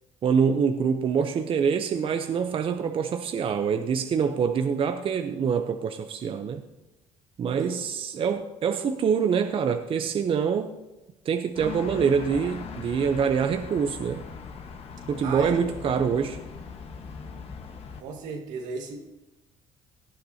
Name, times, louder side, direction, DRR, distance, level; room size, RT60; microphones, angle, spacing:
voice 1, 0.2-6.6 7.4-10.7 11.3-14.2 15.1-16.4, right 6 dB, 45° right, 7 dB, 0.7 m, -25 dB
voice 2, 7.5-7.8 15.2-15.6 18.0-19.0, right 4 dB, 85° right, 3 dB, 1.9 m, -35 dB
sound 1, 11.6-18.0, left 5 dB, 50° left, 1.4 m, -40 dB
18.0 x 10.5 x 2.8 m, 1.0 s
cardioid pair, 95°, 13 cm